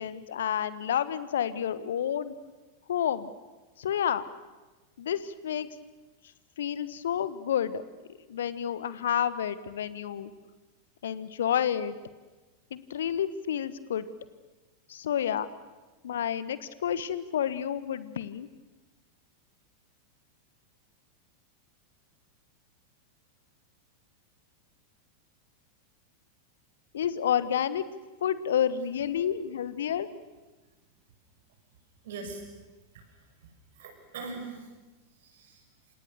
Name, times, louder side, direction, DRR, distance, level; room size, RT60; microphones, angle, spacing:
voice 1, 0.0-2.3 2.9-3.3 3.8-4.2 5.0-5.7 6.6-7.8 8.3-10.3 11.0-12.0 12.7-14.1 14.9-15.5 16.0-18.5 26.9-27.8 28.2-30.1, left 9 dB, 60° left, 15 dB, 1.3 m, -29 dB
voice 2, 32.0-32.4 32.9-33.2 33.7-34.7 35.2-35.6, right 4 dB, 55° right, 4 dB, 7.1 m, -41 dB
28.0 x 27.5 x 6.9 m, 1.2 s
figure-of-eight pair, 90°, 0 cm